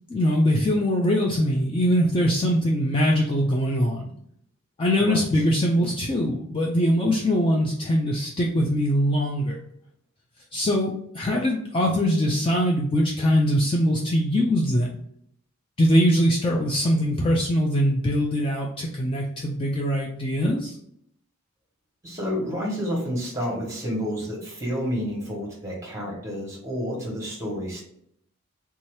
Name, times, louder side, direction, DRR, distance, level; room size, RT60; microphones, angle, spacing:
voice 1, 0.1-4.1 4.8-9.6 10.5-14.9 15.8-20.8, equal, 25° left, -1 dB, 0.3 m, -22 dB
voice 2, 22.0-27.8, equal, 15° right, -2 dB, 1.2 m, -30 dB
3.5 x 2.8 x 3.2 m, 0.70 s
head